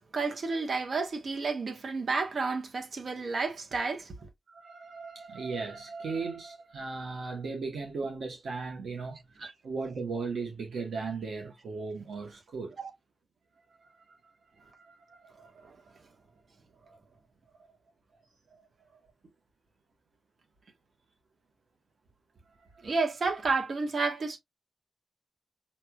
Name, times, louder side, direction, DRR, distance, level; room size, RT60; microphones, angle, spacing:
voice 1, 0.1-4.1 9.4-9.5 12.8-12.9 22.8-24.4, right 4 dB, 70° right, 1.3 m, -31 dB
voice 2, 4.5-9.2 9.6-12.8 13.8-14.2 14.6-15.3 15.6-15.7 22.9-23.0, right 4 dB, 90° right, 1.1 m, -37 dB
5.7 x 3.0 x 2.3 m
cardioid pair, 55°, 0 cm